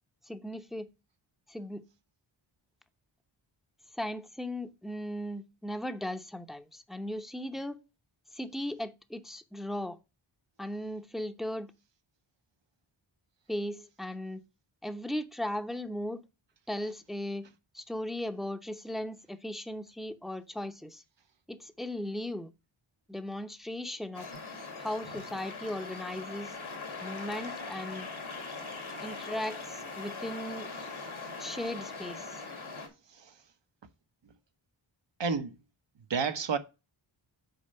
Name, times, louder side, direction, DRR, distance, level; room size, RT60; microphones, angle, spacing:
voice 1, 0.2-0.9 1.5-1.8 3.9-7.8 8.3-10.0 10.6-11.7 13.5-14.4 14.8-16.2 16.7-17.5 17.7-21.0 21.5-22.5 23.1-24.3 24.8-26.5 27.0-28.1 29.0-30.7 31.4-32.4, left 1 dB, ahead, 0.8 m, -37 dB
sound 1, 24.1-32.9, left 3 dB, 75° left, 2.1 m, -41 dB
voice 2, 35.2-35.5 36.1-36.6, right 5 dB, 65° right, 1.0 m, -30 dB
6.9 x 4.4 x 5.4 m
cardioid pair, 45°, 48 cm